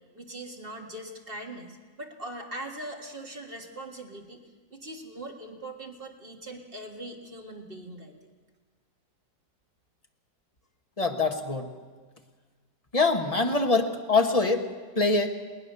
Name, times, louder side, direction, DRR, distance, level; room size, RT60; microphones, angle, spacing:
voice 1, 0.1-4.4 4.7-8.1, right 1 dB, 30° right, 2 dB, 1.8 m, -41 dB
voice 2, 11.0-11.7 12.9-14.7 14.9-15.3, left 3 dB, 25° left, 4 dB, 1.2 m, -24 dB
21.0 x 18.5 x 6.7 m, 1.5 s
omnidirectional pair, 1.9 m